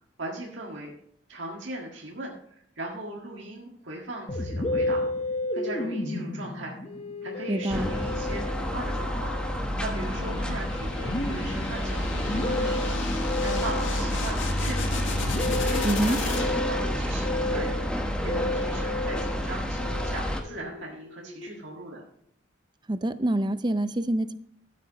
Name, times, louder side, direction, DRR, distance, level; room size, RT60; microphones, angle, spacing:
voice 1, 0.2-0.9 1.3-5.1 5.5-6.8 7.2-9.3 9.8-15.1 15.4-17.9 18.2-22.0, right 2 dB, 75° right, -2 dB, 1.8 m, -39 dB
Musical instrument, 4.3-21.9, left 2 dB, 30° left, 1.1 m, -33 dB
voice 2, 7.5-7.9 15.8-16.2 22.9-24.3, right 1 dB, 25° right, 12 dB, 0.5 m, -26 dB
sound 1, 7.7-20.4, equal, 5° left, 1.2 m, -29 dB
sound 2, 10.0-16.8, left 4 dB, 80° left, 1.7 m, -36 dB
14.0 x 8.4 x 3.0 m, 0.68 s
head